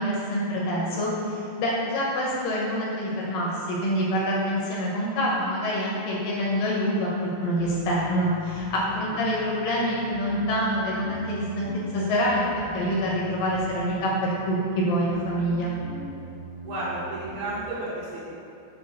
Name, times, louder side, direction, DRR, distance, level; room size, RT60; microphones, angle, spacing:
voice 1, 0.0-11.7 11.9-15.7, equal, 65° left, -4 dB, 2.4 m, -26 dB
sound 1, 7.6-17.6, right 1 dB, 90° left, 3.8 m, -41 dB
voice 2, 16.6-18.2, right 2 dB, 65° right, -13 dB, 3.6 m, -32 dB
8.5 x 3.5 x 6.2 m, 2.7 s
omnidirectional pair, 5.0 m